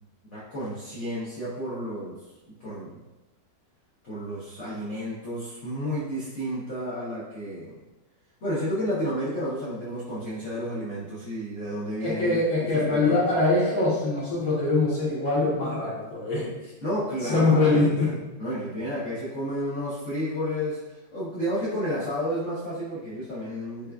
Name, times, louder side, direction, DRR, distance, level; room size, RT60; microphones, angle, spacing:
voice 1, 0.3-2.2 2.6-3.0 4.0-7.8 8.4-12.4 12.7-13.2 16.8-17.9 18.4-23.9, equal, 85° left, -9 dB, 0.6 m, -31 dB
voice 2, 12.0-16.4 17.2-18.1, left 2 dB, 55° left, -7 dB, 1.1 m, -23 dB
4.7 x 2.2 x 2.2 m, 1.1 s
omnidirectional pair, 2.2 m